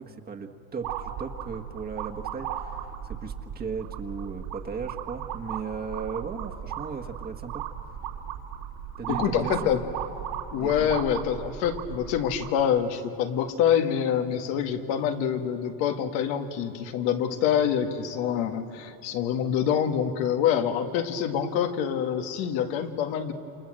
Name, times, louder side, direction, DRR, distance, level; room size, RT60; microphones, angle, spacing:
voice 1, 0.0-7.6 9.0-9.6 10.5-10.9, right 5 dB, 25° right, 4 dB, 1.5 m, -36 dB
sound 1, 0.8-12.6, right 9 dB, 75° right, 3.4 m, -36 dB
voice 2, 9.1-9.8 10.5-23.3, left 8 dB, 80° left, 6 dB, 2.0 m, -26 dB
29.0 x 26.5 x 7.7 m, 2.9 s
cardioid pair, 135°, 37 cm